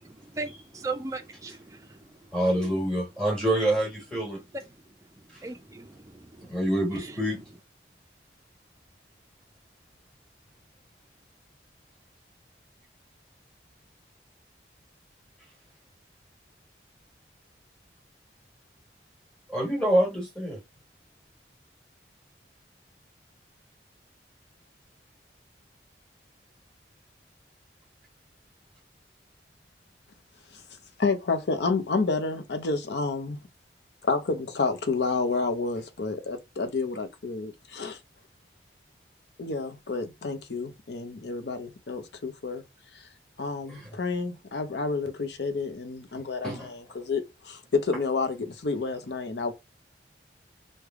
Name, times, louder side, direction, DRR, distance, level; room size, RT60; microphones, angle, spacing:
voice 1, 0.0-2.3 4.3-6.6 6.9-7.3, right 3 dB, 20° right, 0.4 m, -39 dB
voice 2, 2.3-4.4 6.5-7.4 19.5-20.6 43.7-43.9 46.4-46.7, right 1 dB, 5° left, 1.4 m, -26 dB
voice 3, 31.0-33.4 34.0-38.0 39.4-42.6 42.9-43.1 43.4-49.5, left 4 dB, 70° left, 0.6 m, -29 dB
3.3 x 2.2 x 3.5 m
head